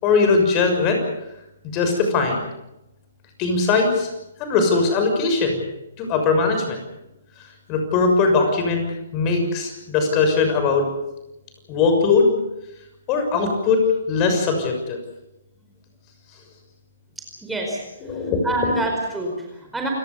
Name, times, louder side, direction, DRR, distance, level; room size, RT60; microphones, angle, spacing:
voice 1, 0.0-1.0 1.6-2.4 3.4-4.1 4.4-5.6 6.0-6.8 7.7-8.9 9.1-10.9 11.7-12.3 13.1-13.8 14.1-15.0 18.0-18.4, left 4 dB, 30° left, 5 dB, 6.5 m, -20 dB
voice 2, 17.2-17.8 18.4-19.9, right 2 dB, 5° right, 0 dB, 4.8 m, -27 dB
29.0 x 18.0 x 7.1 m, 0.89 s
figure-of-eight pair, 130°, 0 cm